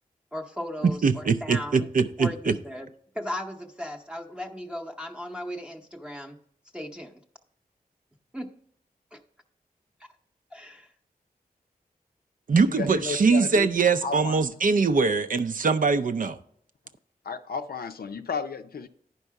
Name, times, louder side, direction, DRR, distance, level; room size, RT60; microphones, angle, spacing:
voice 1, 0.3-1.9 2.2-2.9 3.1-6.4 6.7-7.1 8.3-8.5 9.1-9.2 10.5-10.9, left 1 dB, 5° right, 0.8 m, -36 dB
voice 2, 0.8-2.5 12.5-16.4, right 4 dB, 60° right, 0.5 m, -22 dB
voice 3, 12.8-13.7 14.0-14.4 17.3-18.9, left 5 dB, 80° left, 0.6 m, -33 dB
10.0 x 5.4 x 4.7 m
wide cardioid pair, 105°, 16 cm